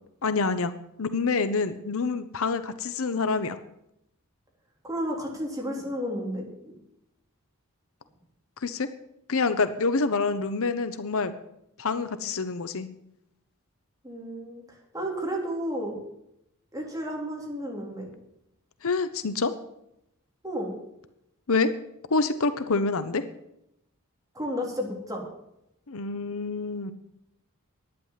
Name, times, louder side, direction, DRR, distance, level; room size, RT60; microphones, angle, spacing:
voice 1, 0.2-0.7 1.0-3.6 8.6-8.9 9.3-11.3 11.8-12.9 18.8-19.5 21.5-21.7 22.1-23.2 25.9-26.9, left 4 dB, 65° left, 11 dB, 0.8 m, -26 dB
voice 2, 4.8-6.8 14.0-14.6 14.9-16.0 16.7-18.1 20.4-20.7 24.3-25.3, equal, 15° right, -1 dB, 3.4 m, -32 dB
11.5 x 9.7 x 7.4 m, 0.81 s
head